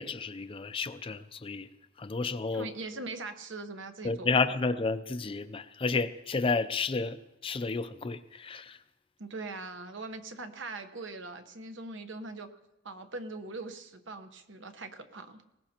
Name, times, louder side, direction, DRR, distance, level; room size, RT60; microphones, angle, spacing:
voice 1, 0.0-1.7 2.0-2.7 4.0-8.8, left 4 dB, 25° left, 0.4 m, -31 dB
voice 2, 2.5-4.3 9.2-12.5 12.8-15.4, right 3 dB, 65° right, 1.1 m, -41 dB
20.0 x 18.0 x 2.9 m
head